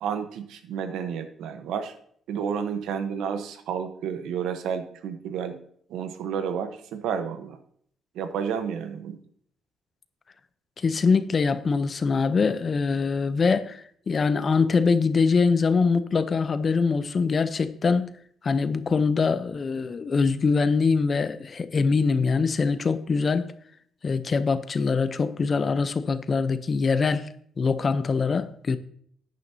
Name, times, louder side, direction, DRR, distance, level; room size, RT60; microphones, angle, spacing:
voice 1, 0.0-1.9 2.3-5.6 5.9-7.6 8.1-9.2, right 7 dB, 85° right, 0.9 m, -31 dB
voice 2, 10.8-18.1 18.4-23.5 24.0-27.3 27.6-28.8, left 4 dB, 40° left, 0.6 m, -23 dB
10.5 x 9.3 x 2.8 m
cardioid pair, 90°, 0 cm